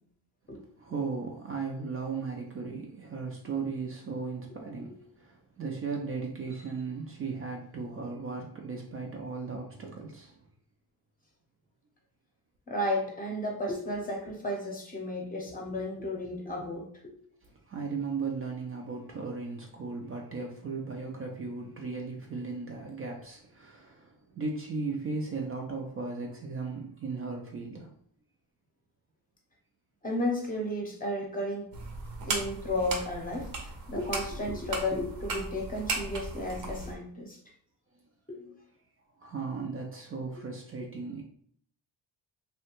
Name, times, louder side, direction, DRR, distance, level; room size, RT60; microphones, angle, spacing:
voice 1, 0.8-10.4 17.4-27.9 39.2-41.2, right 4 dB, 35° right, 0.4 m, -36 dB
voice 2, 12.7-16.9 30.0-31.7 32.3-37.4 38.3-38.5 40.8-40.9, left 1 dB, 20° left, 0.7 m, -33 dB
sound 1, 31.7-36.9, right 3 dB, 70° right, 0.8 m, -36 dB
2.7 x 2.2 x 2.9 m
cardioid pair, 120°, 39 cm